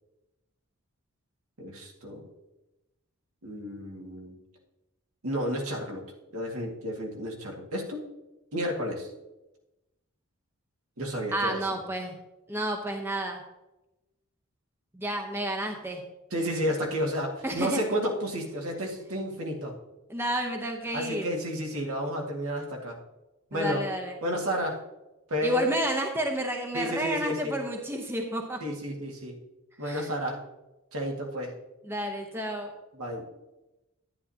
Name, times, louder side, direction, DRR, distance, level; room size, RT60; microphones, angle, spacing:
voice 1, 1.6-2.2 3.4-4.3 5.2-6.0 6.3-8.1 8.5-9.1 11.0-11.6 16.3-19.7 20.9-23.0 23.5-23.8 24.2-24.8 25.3-25.8 26.7-27.6 28.6-29.4 29.8-30.4 30.9-31.5 33.0-33.2, equal, 80° right, 0 dB, 2.0 m, -31 dB
voice 2, 11.3-12.2 12.5-13.4 14.9-16.0 17.4-17.8 20.1-21.4 23.5-24.2 25.4-28.6 29.8-30.1 31.8-32.7, right 1 dB, 10° right, 2 dB, 0.8 m, -31 dB
11.0 x 10.0 x 2.8 m, 0.99 s
head